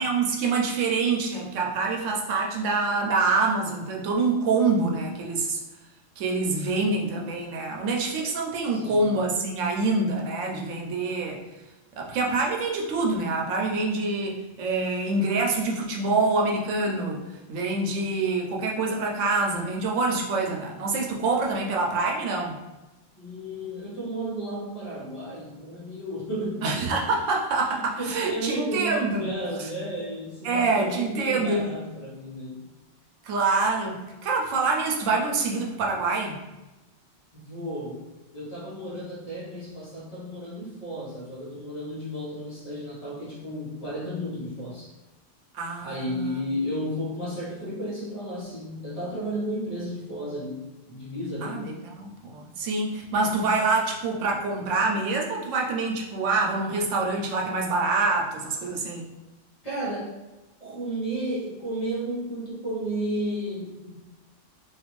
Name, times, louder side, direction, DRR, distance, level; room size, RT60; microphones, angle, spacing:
voice 1, 0.0-5.6 6.2-11.4 12.0-17.2 17.5-22.6 26.6-29.3 29.6-29.7 30.4-31.7 33.2-36.4 45.5-46.4 51.4-59.1, right 3 dB, 85° right, 0 dB, 1.0 m, -26 dB
voice 2, 8.7-9.1 23.1-26.9 27.7-32.7 37.3-38.0 38.3-44.9 45.8-51.7 59.6-60.2 60.6-63.9, equal, 35° left, -8 dB, 1.0 m, -33 dB
2.5 x 2.4 x 3.0 m, 1.1 s
omnidirectional pair, 1.3 m